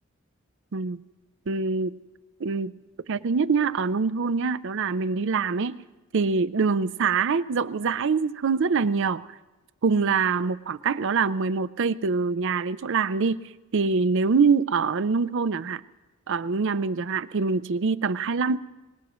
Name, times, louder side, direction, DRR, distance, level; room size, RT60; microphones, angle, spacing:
voice 1, 1.5-1.9 2.4-2.8 3.1-5.8 6.1-9.2 9.8-13.4 13.7-15.8 16.3-18.6, right 5 dB, 65° right, 15 dB, 0.5 m, -24 dB
24.5 x 19.0 x 3.1 m, 1.1 s
head